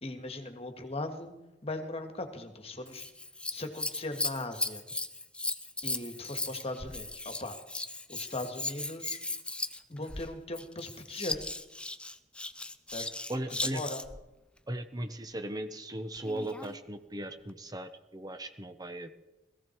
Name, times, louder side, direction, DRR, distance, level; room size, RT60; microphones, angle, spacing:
voice 1, 0.0-1.3 1.6-3.1 3.5-4.8 5.8-7.6 8.1-9.2 9.9-11.4 12.9-13.1 13.6-14.0, left 2 dB, 35° left, 7 dB, 1.8 m, -39 dB
Scissors, 2.9-14.2 16.2-16.8 17.5-17.6, left 2 dB, 5° left, 0.6 m, -37 dB
voice 2, 13.3-13.8 14.7-19.1, right 1 dB, 20° right, 8 dB, 0.9 m, -37 dB
17.5 x 15.5 x 4.6 m, 0.99 s
head